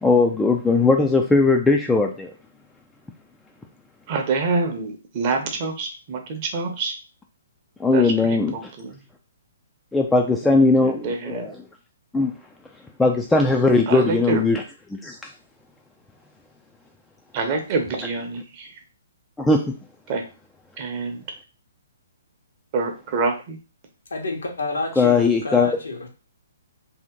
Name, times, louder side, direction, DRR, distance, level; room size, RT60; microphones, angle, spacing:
voice 1, 0.0-2.3 7.8-8.7 9.9-11.5 12.1-12.3 13.0-14.6 14.9-15.3 19.4-19.7 25.0-25.7, left 3 dB, 5° left, 1 dB, 0.3 m, -19 dB
voice 2, 4.1-6.9 7.9-9.0 10.4-11.5 13.9-14.5 17.3-18.8 20.1-20.2 20.8-21.2 22.7-23.6, right 4 dB, 40° right, 4 dB, 0.8 m, -27 dB
voice 3, 24.1-26.1, left 2 dB, 75° left, 1 dB, 1.0 m, -29 dB
2.8 x 2.5 x 3.5 m, 0.33 s
figure-of-eight pair, 130°, 0 cm